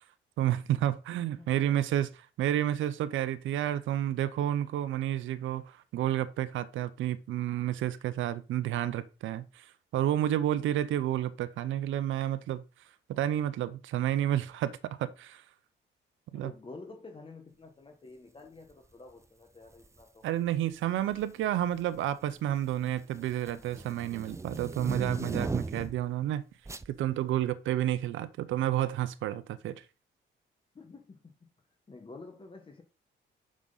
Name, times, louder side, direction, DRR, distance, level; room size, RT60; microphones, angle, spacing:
voice 1, 0.4-2.1 2.4-12.6 13.1-15.4 16.3-16.5 20.2-26.5 26.9-29.8, right 12 dB, 80° right, 0.7 m, -30 dB
voice 2, 1.4-1.8 16.3-20.3 30.7-31.5 31.9-32.8, left 3 dB, 25° left, 1.5 m, -49 dB
sound 1, 19.7-20.0 21.0-21.4 21.8-26.1 26.7-26.9, right 3 dB, 15° right, 0.5 m, -37 dB
7.4 x 6.3 x 4.0 m
cardioid pair, 90°, 20 cm